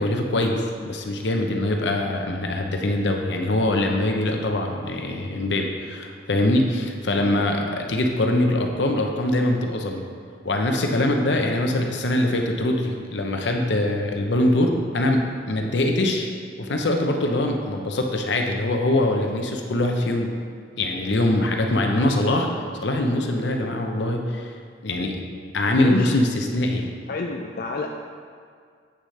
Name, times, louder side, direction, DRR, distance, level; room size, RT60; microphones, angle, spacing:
voice 1, 0.0-10.0 10.4-16.3 16.6-20.3 20.8-22.5 22.8-24.5 24.8-25.2 25.5-26.9, left 1 dB, 80° left, 3 dB, 0.8 m, -23 dB
voice 2, 25.8-26.2 27.1-27.9, left 3 dB, 55° left, 2 dB, 0.4 m, -27 dB
8.1 x 6.3 x 3.3 m, 2.1 s
head